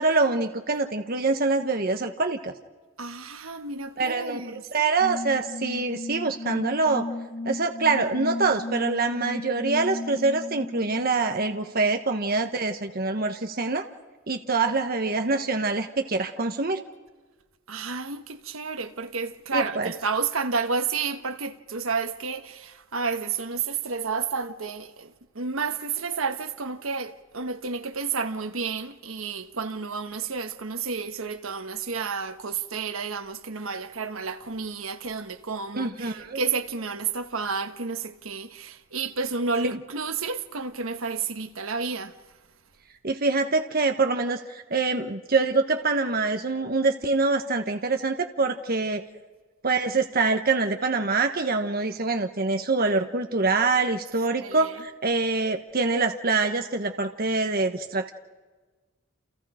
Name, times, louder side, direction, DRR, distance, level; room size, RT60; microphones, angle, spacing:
voice 1, 0.0-2.5 4.0-7.1 7.4-13.9 14.3-16.8 19.5-19.9 35.7-36.4 43.0-49.0 49.6-58.1, right 3 dB, 45° right, 1.2 m, -25 dB
voice 2, 3.0-4.6 17.7-42.1 54.2-54.9, right 5 dB, 80° right, 1.3 m, -31 dB
sound 1, 5.0-12.0, left 2 dB, 45° left, 1.7 m, -35 dB
29.5 x 28.0 x 5.0 m
head